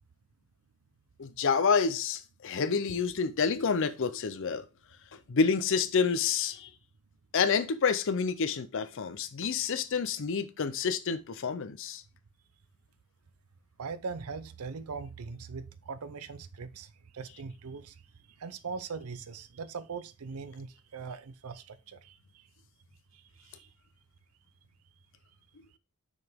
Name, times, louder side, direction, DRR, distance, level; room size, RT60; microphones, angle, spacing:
voice 1, 1.2-4.7 5.1-6.7 7.3-12.0, left 5 dB, 60° left, 0.5 m, -28 dB
voice 2, 13.8-18.0 18.4-22.4 23.1-23.7, right 5 dB, 75° right, 0.6 m, -41 dB
6.3 x 5.0 x 3.5 m
head